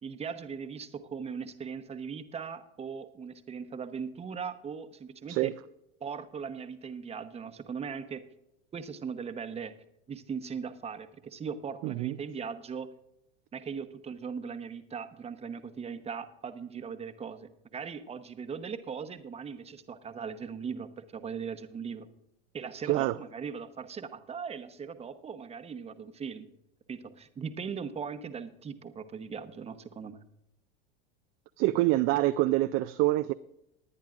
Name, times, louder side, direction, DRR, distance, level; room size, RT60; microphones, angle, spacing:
voice 1, 0.0-5.5 6.0-8.2 8.7-9.7 10.1-12.9 13.5-22.1 22.5-26.5 26.9-30.2, right 6 dB, 20° right, 10 dB, 0.9 m, -39 dB
voice 2, 11.8-12.2 22.9-23.2 31.6-33.3, right 17 dB, 40° right, 11 dB, 0.4 m, -26 dB
19.5 x 10.5 x 2.5 m, 0.81 s
hypercardioid pair, 105°, 31 cm